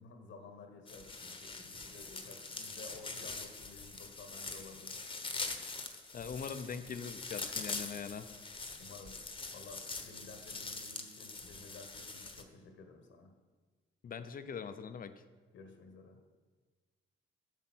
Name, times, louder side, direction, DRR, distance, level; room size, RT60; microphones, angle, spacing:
voice 1, 0.0-5.0 8.8-13.3 15.5-16.2, left 3 dB, 75° left, 5 dB, 1.4 m, -53 dB
sound 1, 0.9-12.4, left 3 dB, 25° left, 1.1 m, -43 dB
voice 2, 6.1-8.3 14.0-15.1, left 6 dB, 45° left, 11 dB, 0.7 m, -42 dB
8.5 x 6.8 x 6.2 m, 1.4 s
cardioid pair, 90°, 20 cm